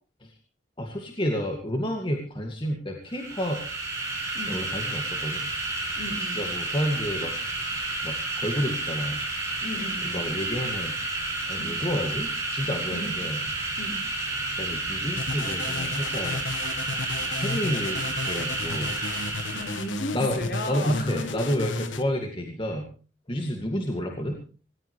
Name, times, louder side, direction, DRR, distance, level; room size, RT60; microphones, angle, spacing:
voice 1, 0.8-3.6 4.5-5.5 6.3-7.3 8.0-9.2 10.1-11.0 11.5-13.4 14.5-16.4 17.4-18.9 20.1-20.4 20.7-22.9 23.3-24.4, equal, 25° left, 2 dB, 2.2 m, -30 dB
sound 1, 3.1-20.0, right 2 dB, 15° right, 6.8 m, -31 dB
voice 2, 4.3-4.6 6.0-6.4 9.6-10.2 11.6-11.8 12.9-13.2 13.8-14.0 17.9-18.1 19.5-21.2, left 1 dB, 55° left, 3 dB, 4.7 m, -35 dB
sound 2, 15.2-22.0, left 3 dB, 85° left, 1.5 m, -33 dB
19.5 x 18.5 x 3.3 m, 0.37 s
head